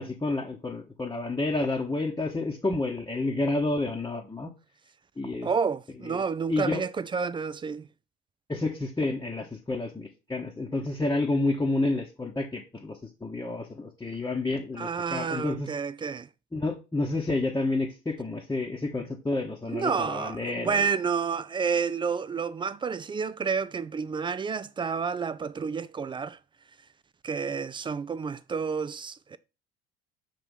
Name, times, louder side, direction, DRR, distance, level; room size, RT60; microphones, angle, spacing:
voice 1, 0.0-4.5 5.2-5.5 6.0-6.2 6.5-6.8 8.5-15.7 16.5-20.9, left 2 dB, 10° left, 1.0 m, -30 dB
voice 2, 5.4-7.9 14.8-16.3 19.7-26.4 27.2-29.4, right 6 dB, 15° right, 0.3 m, -30 dB
6.1 x 3.0 x 5.3 m
hypercardioid pair, 65°, 31 cm